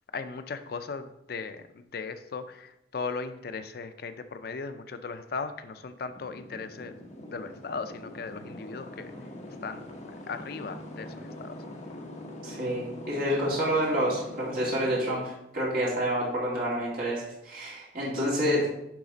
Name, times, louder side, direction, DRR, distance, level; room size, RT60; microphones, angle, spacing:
voice 1, 0.1-6.9 7.3-9.1 9.6-9.8 10.3-11.6, left 4 dB, 55° left, 10 dB, 0.4 m, -37 dB
sound 1, 5.7-15.1, left 1 dB, 40° left, 1.2 m, -43 dB
voice 2, 12.4-18.7, equal, 50° right, -6 dB, 2.6 m, -28 dB
10.5 x 4.0 x 4.0 m, 0.83 s
head